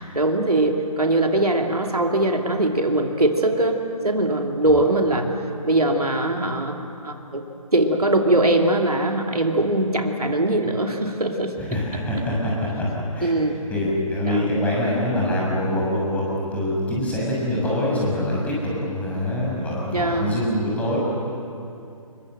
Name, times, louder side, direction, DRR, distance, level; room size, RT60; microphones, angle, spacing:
voice 1, 0.0-5.4 5.6-7.4 7.7-11.8 13.2-13.6 14.3-14.5 19.9-20.3, right 1 dB, 85° right, 3 dB, 2.8 m, -21 dB
voice 2, 11.6-12.8 13.1-13.3 13.7-21.0, left 1 dB, 5° left, -5 dB, 6.6 m, -24 dB
28.5 x 22.0 x 7.8 m, 2.6 s
figure-of-eight pair, 145°, 19 cm